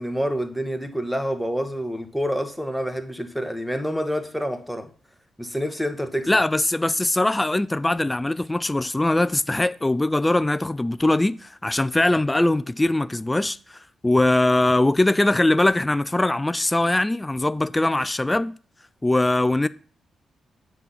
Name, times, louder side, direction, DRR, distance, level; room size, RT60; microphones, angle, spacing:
voice 1, 0.0-4.9 5.4-6.3, equal, ahead, 1.3 m, -27 dB
voice 2, 6.3-18.5 19.0-19.7, left 2 dB, 20° left, 0.3 m, -21 dB
7.3 x 4.0 x 5.7 m
hypercardioid pair, 45°, 0 cm